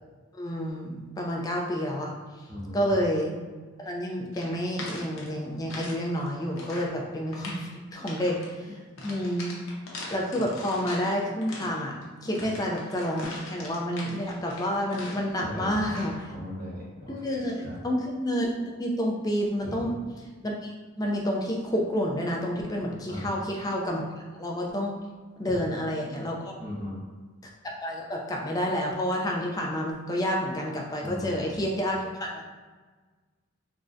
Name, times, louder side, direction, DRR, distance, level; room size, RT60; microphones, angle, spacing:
voice 1, 0.4-2.1 2.7-3.3 3.8-9.5 10.1-11.9 12.2-16.3 17.1-20.0 20.4-24.1 24.3-24.9 25.4-26.5 27.6-32.4, equal, 20° left, -1 dB, 0.3 m, -29 dB
voice 2, 2.5-2.9 8.0-8.1 15.4-16.0 16.3-17.2 17.6-17.8 19.6-19.9 23.1-23.3 26.6-27.0 31.0-31.4, left 1 dB, 45° right, -5 dB, 0.8 m, -37 dB
sound 1, 4.3-6.0 6.3-6.9 7.3-7.7 8.1-8.5 9.0-11.1 11.4-15.4 15.8-16.2, left 2 dB, 75° left, 0.6 m, -41 dB
3.6 x 2.1 x 2.5 m, 1.4 s
head